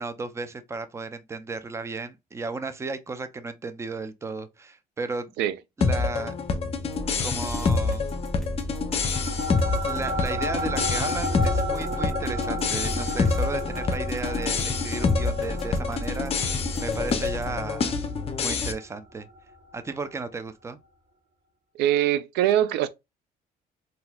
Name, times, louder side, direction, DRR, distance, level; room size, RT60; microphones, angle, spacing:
voice 1, 0.0-5.3 5.8-6.3 7.2-8.1 9.8-18.0 18.4-19.3 19.7-20.8, right 3 dB, 15° right, 0.4 m, -34 dB
sound 1, 5.8-18.7, left 4 dB, 35° left, 0.6 m, -27 dB
sound 2, 6.9-17.6, equal, ahead, 1.1 m, -37 dB
sound 3, 9.0-19.8, equal, 70° right, 1.1 m, -34 dB
voice 2, 21.8-22.9, right 12 dB, 85° right, 0.4 m, -22 dB
4.0 x 2.6 x 2.3 m
cardioid pair, 110°, 17 cm